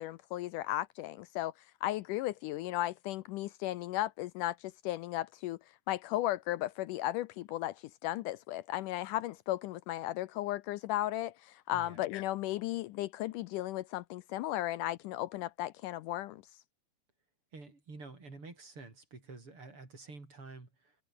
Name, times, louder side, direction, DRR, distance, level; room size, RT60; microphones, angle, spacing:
voice 1, 0.0-1.5 1.8-5.6 5.9-16.4, left 15 dB, 75° left, 2.1 m, -35 dB
voice 2, 17.5-21.0, right 3 dB, 40° right, 6.2 m, -49 dB
omnidirectional pair, 3.9 m